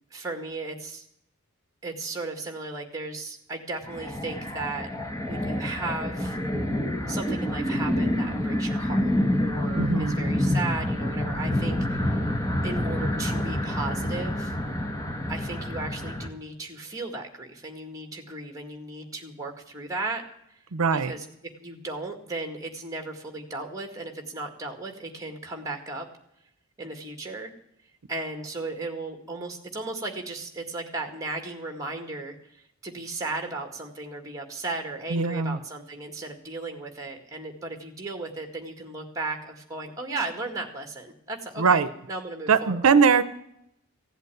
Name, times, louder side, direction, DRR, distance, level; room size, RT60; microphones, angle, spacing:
voice 1, 0.1-1.0 1.8-4.9 5.2-6.4 7.1-9.1 9.4-12.2 12.6-14.6 15.3-20.2 20.5-20.6 20.9-21.3 21.6-26.1 26.8-27.5 28.1-41.8 42.1-42.9, right 3 dB, 15° right, 4 dB, 2.0 m, -35 dB
sound 1, 3.9-16.3, left 1 dB, 15° left, 1.4 m, -27 dB
voice 2, 9.7-10.2 20.7-21.1 35.1-35.6 41.6-41.9 42.5-43.2, right 5 dB, 80° right, 13 dB, 0.7 m, -21 dB
15.5 x 8.2 x 9.2 m, 0.77 s
head